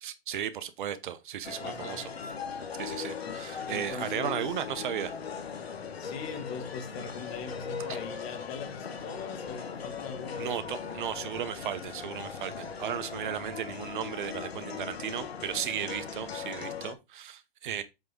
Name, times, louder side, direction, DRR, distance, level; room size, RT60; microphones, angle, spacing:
voice 1, 0.0-2.0 2.8-5.1 10.4-17.8, right 9 dB, 55° right, 1.0 m, -35 dB
sound 1, 1.4-16.9, left 6 dB, 85° left, 1.5 m, -39 dB
voice 2, 1.6-2.1 3.2-3.4 3.7-4.6 6.0-10.5 10.8-11.0, left 5 dB, 35° left, 1.9 m, -41 dB
7.7 x 3.7 x 5.2 m
hypercardioid pair, 140°, 30 cm